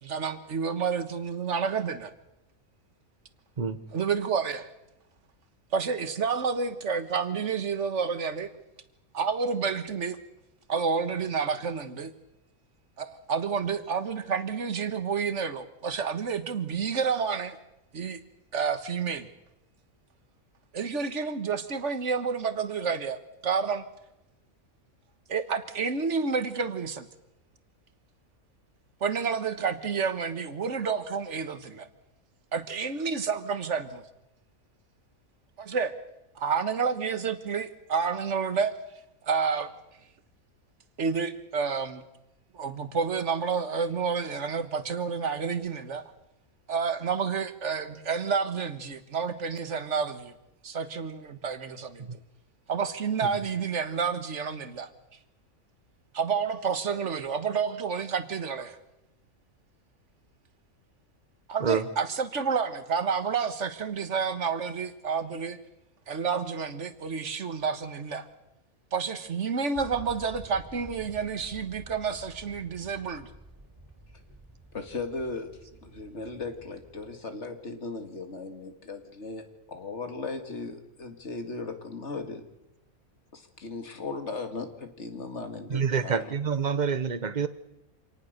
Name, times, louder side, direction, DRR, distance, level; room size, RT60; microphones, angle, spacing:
voice 1, 0.0-2.1 3.9-4.7 5.7-8.5 9.1-10.2 10.7-12.1 13.0-17.6 17.9-18.2 18.5-19.3 20.7-23.8 25.3-27.1 29.0-31.9 32.5-34.0 35.6-35.9 36.3-38.7 39.2-39.7 41.0-42.0 42.5-46.1 46.7-50.3 50.6-52.1 52.7-54.9 56.1-58.8 61.5-65.6 66.1-68.3 68.9-73.3, right 5 dB, 55° right, 1.7 m, -29 dB
sound 1, 69.7-77.1, right 1 dB, 10° right, 4.2 m, -50 dB
voice 2, 74.7-82.4 83.3-86.3, left 3 dB, 50° left, 2.3 m, -37 dB
voice 3, 85.7-87.5, right 6 dB, 35° right, 1.1 m, -27 dB
26.5 x 19.0 x 6.6 m
omnidirectional pair, 1.5 m